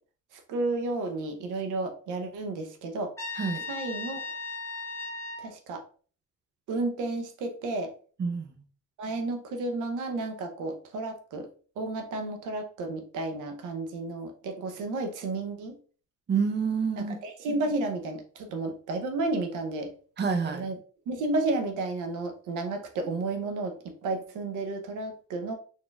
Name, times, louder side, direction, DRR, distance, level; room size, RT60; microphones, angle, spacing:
voice 1, 0.3-3.1 3.7-4.2 5.4-5.8 6.7-7.9 9.0-11.5 11.8-15.8 17.2-19.9 20.5-20.7 21.1-25.5, right 2 dB, 85° right, 5 dB, 0.8 m, -32 dB
Trumpet, 3.2-5.5, left 3 dB, 10° left, 1.1 m, -36 dB
voice 2, 8.2-8.6 16.3-17.1 20.2-20.7, right 5 dB, 35° right, 7 dB, 0.7 m, -28 dB
4.1 x 3.6 x 2.3 m, 0.41 s
cardioid pair, 90°, 30 cm